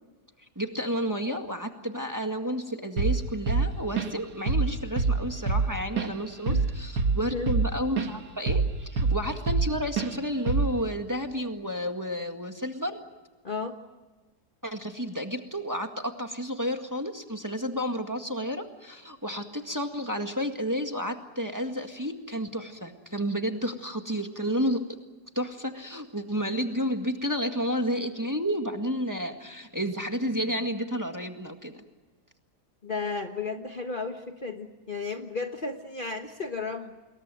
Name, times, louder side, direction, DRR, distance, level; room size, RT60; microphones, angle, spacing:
voice 1, 0.6-13.0 14.6-24.8 25.4-31.8, equal, 10° right, 4 dB, 1.8 m, -31 dB
Drum kit / Drum, 3.0-3.2 3.5-4.2 4.5-4.7 5.0-8.1 8.5-9.7 10.0-10.1 10.5-10.8, right 4 dB, 75° right, 2.2 m, -25 dB
voice 2, 13.4-13.8 32.8-36.9, left 4 dB, 35° left, 5 dB, 1.4 m, -34 dB
28.0 x 22.0 x 7.7 m, 1.2 s
omnidirectional pair, 1.7 m